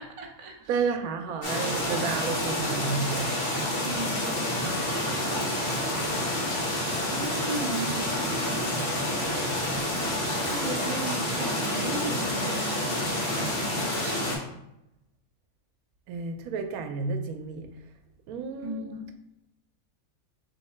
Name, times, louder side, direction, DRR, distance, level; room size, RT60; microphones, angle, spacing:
voice 1, 0.0-0.8 3.8-5.2 7.1-9.0 10.4-14.4 18.6-19.1, right 2 dB, 50° right, 1 dB, 0.3 m, -37 dB
voice 2, 0.7-3.4 5.8-6.2 9.2-9.3 9.6-9.9 16.1-17.7 18.3-18.9, right 5 dB, 85° right, 6 dB, 1.0 m, -32 dB
sound 1, 1.4-14.4, left 1 dB, 55° left, 1.6 m, -28 dB
3.6 x 3.2 x 4.2 m, 0.85 s
omnidirectional pair, 1.5 m